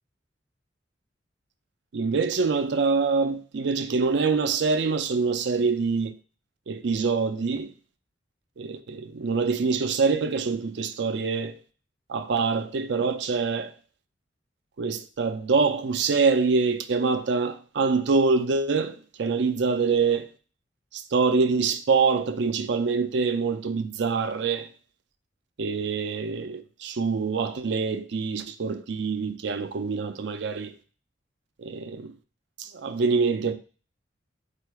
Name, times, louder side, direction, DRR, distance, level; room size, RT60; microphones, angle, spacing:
voice 1, 1.9-6.1 6.7-7.7 8.6-11.6 12.1-13.7 14.8-20.3 20.9-24.7 25.6-30.7 31.6-32.1 32.6-33.5, right 4 dB, 70° right, 0.5 m, -25 dB
4.5 x 2.5 x 4.5 m
head